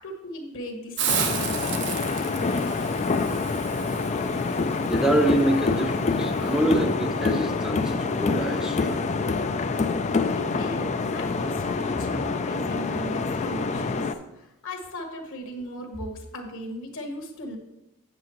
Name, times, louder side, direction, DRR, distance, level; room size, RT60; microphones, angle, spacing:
voice 1, 0.0-1.6 10.3-17.6, equal, 60° left, 3 dB, 1.4 m, -37 dB
Hiss, 1.0-6.6, right 8 dB, 55° right, 0.7 m, -34 dB
sound 1, 1.1-14.1, left 4 dB, 30° left, 0.4 m, -26 dB
voice 2, 4.9-9.1, right 1 dB, 5° right, 2 dB, 0.7 m, -26 dB
8.5 x 7.7 x 3.1 m, 0.92 s
head